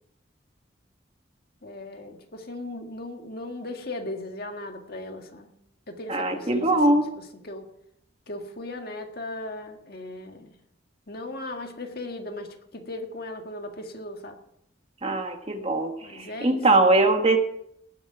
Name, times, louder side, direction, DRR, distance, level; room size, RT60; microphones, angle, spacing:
voice 1, 1.6-5.5 5.9-7.7 8.3-10.6 11.1-14.4 16.0-16.7, left 2 dB, 50° left, 4 dB, 1.8 m, -37 dB
voice 2, 6.1-7.1 15.0-17.4, right 2 dB, 30° right, 5 dB, 1.4 m, -22 dB
19.5 x 7.0 x 6.0 m, 0.74 s
head